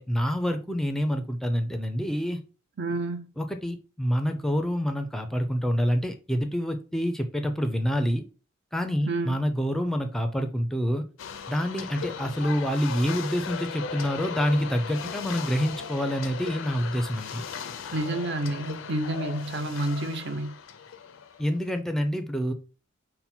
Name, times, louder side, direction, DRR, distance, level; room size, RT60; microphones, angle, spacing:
voice 1, 0.0-2.4 3.4-8.2 8.7-11.0 11.5-17.4 21.4-22.5, equal, ahead, 0.4 m, -27 dB
voice 2, 2.8-3.3 9.1-9.4 15.0-15.1 17.9-20.6, right 2 dB, 60° right, 0.6 m, -29 dB
sound 1, 11.2-21.6, left 6 dB, 70° left, 0.5 m, -37 dB
5.5 x 2.2 x 4.3 m
head